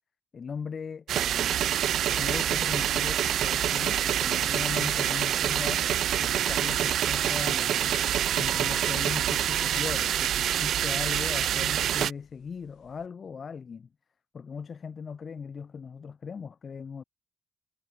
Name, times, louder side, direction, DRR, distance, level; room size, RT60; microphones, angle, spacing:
voice 1, 0.3-1.6 2.1-5.9 6.2-8.0 8.4-13.9 14.3-17.0, left 6 dB, 45° left, 2.9 m, -38 dB
sound 1, 1.1-12.1, right 11 dB, 75° right, 0.7 m, -26 dB
sound 2, 6.5-13.1, left 12 dB, 80° left, 2.3 m, -52 dB
cardioid pair, 70°, 0 cm